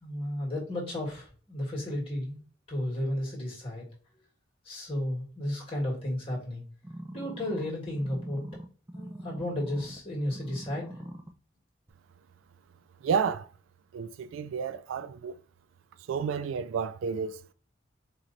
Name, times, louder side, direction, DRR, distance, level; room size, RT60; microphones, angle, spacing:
voice 1, 0.0-2.4 2.7-3.8 4.6-6.6 7.1-8.4 8.9-11.0, left 1 dB, 30° left, 1.7 m, -33 dB
sound 1, 6.8-10.0 10.3-11.3 11.9-12.0, equal, 10° right, 0.4 m, -43 dB
voice 2, 13.0-13.5 13.9-15.4 16.1-17.5, right 6 dB, 85° right, 0.3 m, -31 dB
4.3 x 3.0 x 2.5 m
head